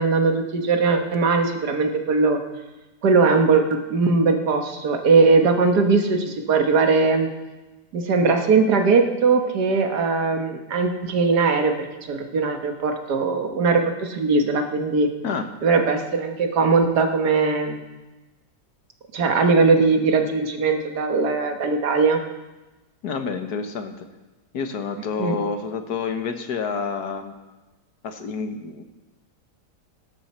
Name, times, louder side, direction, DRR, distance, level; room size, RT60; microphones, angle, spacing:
voice 1, 0.0-2.4 3.0-7.3 7.9-15.1 15.6-17.8 19.1-22.2 25.2-25.4, right 4 dB, 70° right, 4 dB, 1.8 m, -20 dB
voice 2, 23.0-24.0 24.5-27.3 28.0-28.8, left 5 dB, 65° left, 7 dB, 1.6 m, -28 dB
18.5 x 12.0 x 4.3 m, 1.1 s
omnidirectional pair, 1.8 m